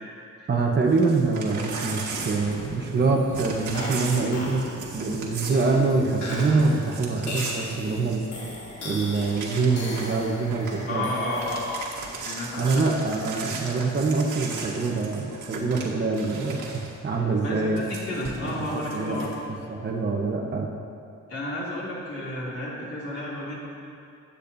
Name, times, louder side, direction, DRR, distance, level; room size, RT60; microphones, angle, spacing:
voice 1, 0.5-8.3 8.8-11.1 12.6-17.8 18.5-20.7, right 3 dB, 35° right, 0 dB, 1.1 m, -25 dB
Crumpling crinkling / Tearing, 0.9-3.0 3.3-8.4 8.8-8.9 9.1-10.2 10.5-10.8 11.2-16.9 17.8-19.3, right 4 dB, 75° right, 2.0 m, -37 dB
sound 1, 2.1-12.0, left 1 dB, 65° left, 2.4 m, -38 dB
voice 2, 10.9-12.8 17.4-19.3 21.3-23.6, left 1 dB, 50° left, -6 dB, 2.9 m, -31 dB
22.0 x 8.7 x 2.7 m, 2.7 s
wide cardioid pair, 160°, 30 cm